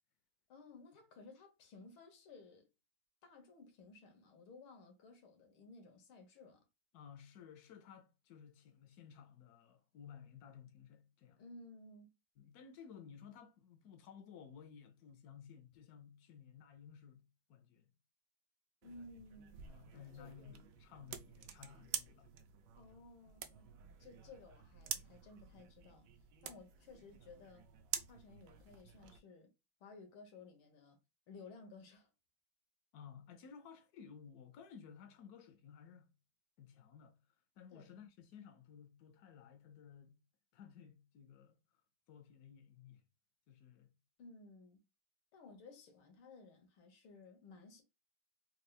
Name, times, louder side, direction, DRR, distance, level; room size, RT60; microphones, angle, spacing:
voice 1, 0.5-2.7 3.2-6.6 11.4-12.1 18.8-19.6 20.2-20.7 22.8-23.7 24.0-26.1 26.4-27.6 28.1-29.5 29.8-31.0 31.3-32.1 37.7-37.9 44.2-44.8 45.3-47.8, left 3 dB, 90° left, 1.9 m, -57 dB
voice 2, 6.9-11.4 12.4-17.9 19.6-22.3 32.9-36.1 36.6-37.2 37.6-40.2 40.5-41.8 42.1-43.0 43.5-43.9, left 7 dB, 75° left, 0.9 m, -56 dB
sound 1, 18.8-29.2, right 10 dB, 75° right, 1.0 m, -48 dB
4.5 x 2.3 x 3.2 m
omnidirectional pair, 2.2 m